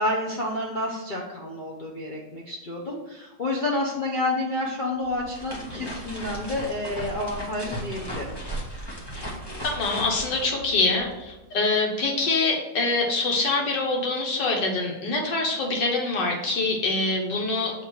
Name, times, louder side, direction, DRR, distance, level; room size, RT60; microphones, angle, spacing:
voice 1, 0.0-8.4, left 1 dB, 80° left, -3 dB, 0.4 m, -29 dB
sound 1, 5.0-11.3, equal, 15° left, 0.9 m, -36 dB
voice 2, 9.6-17.7, left 3 dB, 65° left, 1 dB, 1.7 m, -25 dB
7.4 x 3.3 x 4.7 m, 1.1 s
omnidirectional pair, 2.2 m